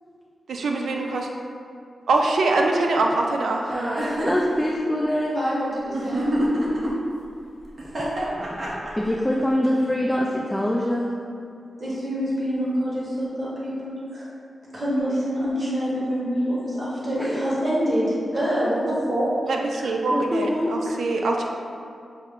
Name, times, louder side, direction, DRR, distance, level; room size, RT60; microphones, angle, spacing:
voice 1, 0.5-1.3 2.1-3.7 19.5-21.4, right 2 dB, 85° right, 1 dB, 0.4 m, -23 dB
voice 2, 3.7-5.3 8.0-11.1 17.2-17.4 19.8-21.0, left 1 dB, 5° left, -3 dB, 0.3 m, -25 dB
sound 1, 3.7-4.4 5.9-6.9 7.8-9.1, right 1 dB, 50° right, 0.8 m, -26 dB
voice 3, 5.3-6.3 11.8-14.3 14.7-19.3, equal, 35° right, -7 dB, 1.3 m, -26 dB
5.5 x 2.1 x 3.7 m, 2.5 s
wide cardioid pair, 100°, 0 cm